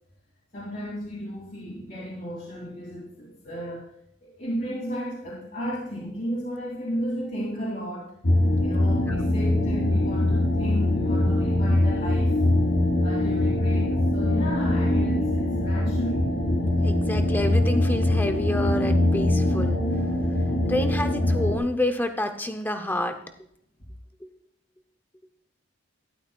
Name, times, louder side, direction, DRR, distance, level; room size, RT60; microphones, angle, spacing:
voice 1, 0.5-3.9 4.2-8.1 8.6-12.4 13.0-16.3, equal, 45° left, -6 dB, 2.5 m, -34 dB
sound 1, 8.2-21.6, left 1 dB, 65° left, 1.8 m, -23 dB
voice 2, 16.8-19.8 20.7-23.1 24.2-24.3, left 1 dB, 10° left, 7 dB, 0.6 m, -28 dB
12.5 x 11.0 x 2.3 m, 0.69 s
head